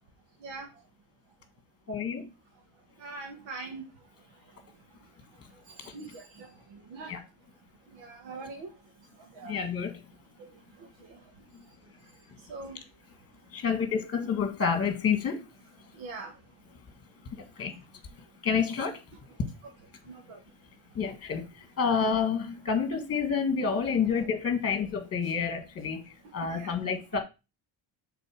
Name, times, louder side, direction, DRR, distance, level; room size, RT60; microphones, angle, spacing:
voice 1, 1.9-2.3 5.8-5.9 7.1-7.2 9.4-10.0 13.5-15.4 17.6-17.7 18.4-19.0 20.9-21.4 21.8-26.0 26.3-27.2, left 6 dB, 30° left, 1.7 m, -28 dB
voice 2, 3.0-3.8 5.8-7.1 8.0-8.7 9.3-9.6 10.4-10.5 11.1-11.2 12.5-12.8 16.0-16.3 20.1-20.4 26.5-26.7, right 3 dB, 70° right, 1.6 m, -42 dB
6.8 x 4.0 x 6.4 m
cardioid pair, 170°, 48 cm